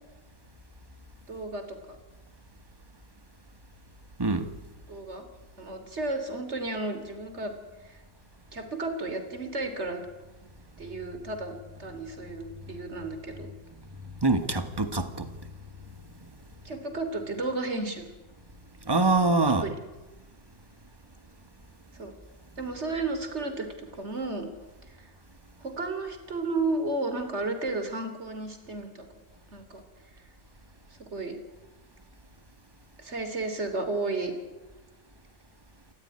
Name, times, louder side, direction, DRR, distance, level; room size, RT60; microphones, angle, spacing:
voice 1, 1.3-2.0 4.9-5.3 5.6-7.5 7.8-8.0 8.5-10.0 10.8-13.5 16.6-18.1 19.5-19.8 21.9-22.1 22.6-24.5 25.0-25.1 25.6-29.1 29.5-29.8 30.2-30.3 31.1-31.4 33.0-34.3, right 2 dB, 30° right, 3.6 m, -33 dB
voice 2, 4.2-4.5 14.2-15.3 18.8-19.7, right 3 dB, 15° right, 1.4 m, -24 dB
28.0 x 15.0 x 9.9 m
omnidirectional pair, 2.2 m